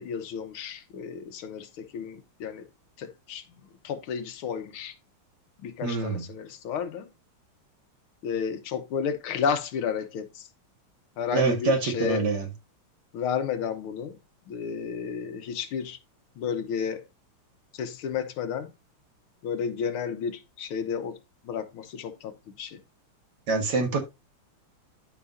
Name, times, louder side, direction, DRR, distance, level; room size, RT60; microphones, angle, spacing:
voice 1, 0.0-2.7 3.0-3.4 3.8-4.9 5.6-7.1 8.2-10.5 11.2-12.3 13.1-14.2 14.5-16.0 16.4-17.0 17.7-18.7 19.4-21.2 21.4-22.8, left 7 dB, 75° left, 1.7 m, -32 dB
voice 2, 5.8-6.2 11.3-12.5 23.5-24.0, right 3 dB, 55° right, 1.9 m, -25 dB
12.5 x 5.0 x 2.6 m
omnidirectional pair, 2.4 m